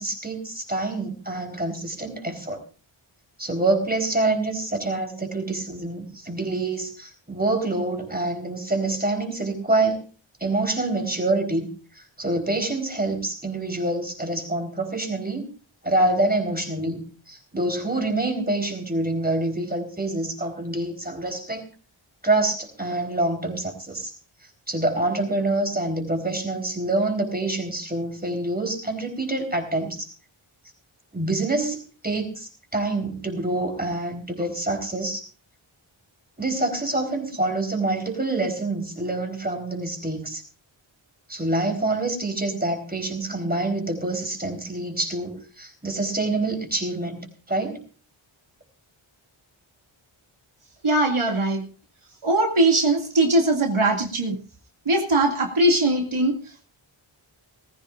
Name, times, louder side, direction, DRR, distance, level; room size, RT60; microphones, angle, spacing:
voice 1, 0.0-2.6 3.4-10.0 10.4-11.7 11.9-15.5 15.8-21.7 22.2-24.1 24.7-30.1 31.1-35.2 36.4-40.4 41.3-47.8, right 2 dB, 20° right, 3 dB, 4.0 m, -26 dB
voice 2, 50.8-51.6 52.2-54.4 54.9-56.6, right 2 dB, 75° right, 1 dB, 2.4 m, -21 dB
19.5 x 15.0 x 2.5 m, 0.36 s
wide cardioid pair, 70°, 50 cm